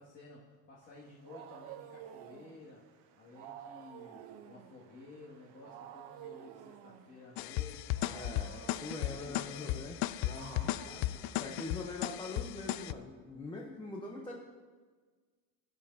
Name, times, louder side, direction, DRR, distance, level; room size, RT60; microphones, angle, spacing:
voice 1, 0.0-8.6 9.0-9.9 10.5-11.8, left 3 dB, 30° left, -7 dB, 2.3 m, -54 dB
Wild animals, 0.9-12.1, right 9 dB, 75° right, 1.0 m, -52 dB
sound 1, 7.4-12.9, left 15 dB, 70° left, 0.5 m, -36 dB
voice 2, 8.1-10.7 11.4-14.4, left 2 dB, 10° left, -1 dB, 1.0 m, -43 dB
17.0 x 9.0 x 2.8 m, 1.5 s
cardioid pair, 140°, 38 cm